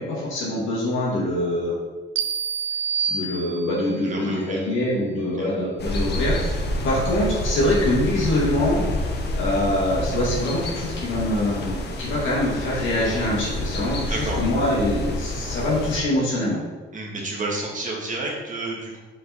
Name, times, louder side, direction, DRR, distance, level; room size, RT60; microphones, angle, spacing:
voice 1, 0.0-1.8 3.1-8.8 9.4-16.6, left 1 dB, 75° left, -5 dB, 2.0 m, -24 dB
sound 1, 2.2-4.0, right 6 dB, 65° right, 0.5 m, -27 dB
voice 2, 4.0-4.6 5.4-5.5 14.1-14.4 16.9-19.0, right 2 dB, 40° right, -2 dB, 1.9 m, -30 dB
sound 2, 5.8-16.0, left 1 dB, 55° left, 0.9 m, -28 dB
5.3 x 4.8 x 4.2 m, 1.3 s
cardioid pair, 90°, 20 cm